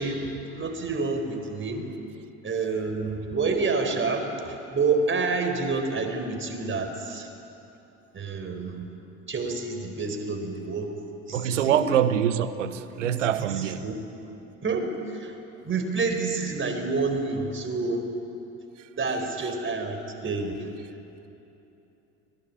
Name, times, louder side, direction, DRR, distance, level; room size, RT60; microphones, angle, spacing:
voice 1, 0.0-1.9 2.4-4.3 4.7-7.3 8.1-8.8 9.3-10.9 11.3-11.8 13.0-13.1 13.4-13.9 14.6-15.3 15.6-18.1 19.0-20.6, right 4 dB, 35° right, 5 dB, 4.5 m, -28 dB
voice 2, 11.3-13.8, right 10 dB, 80° right, 13 dB, 1.1 m, -24 dB
24.5 x 20.5 x 8.7 m, 3.0 s
figure-of-eight pair, 55°, 37 cm